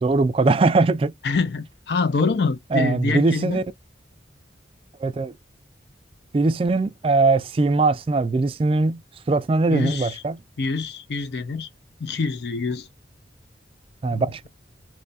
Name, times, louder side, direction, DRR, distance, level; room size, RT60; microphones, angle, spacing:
voice 1, 0.0-1.1 2.7-3.6 5.0-5.3 6.3-9.0 9.3-10.4 14.0-14.5, right 3 dB, 30° right, 0.3 m, -21 dB
voice 2, 1.2-3.6 9.7-10.2 10.6-11.7 12.0-12.9 14.0-14.5, left 4 dB, 70° left, 0.5 m, -25 dB
3.0 x 2.3 x 4.0 m
head